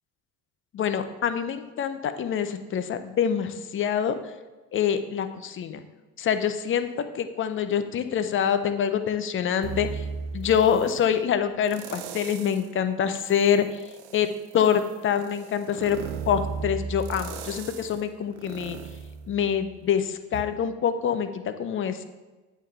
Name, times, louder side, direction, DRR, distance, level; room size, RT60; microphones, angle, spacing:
voice 1, 0.7-4.1 4.7-5.9 6.2-6.9 7.1-10.0 10.3-13.8 14.1-18.8 19.3-22.0, left 8 dB, 30° left, 10 dB, 0.5 m, -25 dB
sound 1, 9.6-11.0 11.6-12.7 13.2-19.9 20.3-20.4, right 5 dB, 65° right, 0.7 m, -37 dB
8.3 x 3.4 x 4.4 m, 1.2 s
hypercardioid pair, 70°, 43 cm